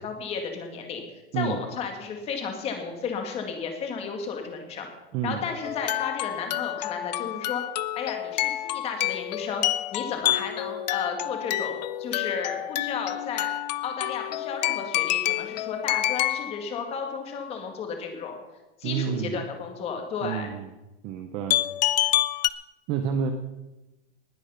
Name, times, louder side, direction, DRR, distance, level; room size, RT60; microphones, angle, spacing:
voice 1, 0.0-1.0 1.3-4.9 5.2-7.6 8.0-9.6 9.9-13.5 13.8-18.4 18.8-20.5, left 6 dB, 20° left, 4 dB, 2.0 m, -33 dB
voice 2, 5.1-5.5 18.8-19.4 20.2-20.7 21.0-21.6 22.9-23.3, right 8 dB, 15° right, 7 dB, 0.5 m, -29 dB
sound 1, 5.6-16.6 21.5-22.5, left 14 dB, 45° left, 0.4 m, -28 dB
19.5 x 8.3 x 5.7 m, 1.0 s
supercardioid pair, 175°, 32 cm